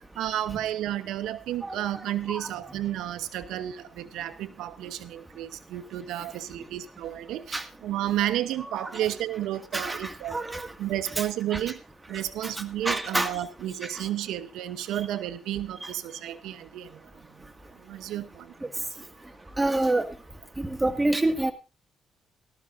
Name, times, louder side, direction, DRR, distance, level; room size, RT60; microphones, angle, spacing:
voice 1, 0.1-10.4 10.8-11.8 12.1-17.1 17.8-18.5, right 12 dB, 90° right, 12 dB, 0.9 m, -32 dB
voice 2, 1.6-2.8 7.5-7.7 8.8-9.2 9.7-10.7 11.2-11.3 11.5-11.6 12.4-13.4 13.8-14.1 15.8-15.9 18.6-18.7 19.6-20.1 20.6-21.5, right 2 dB, 15° right, 7 dB, 2.0 m, -28 dB
18.0 x 13.5 x 2.6 m, 0.29 s
cardioid pair, 90°, 0 cm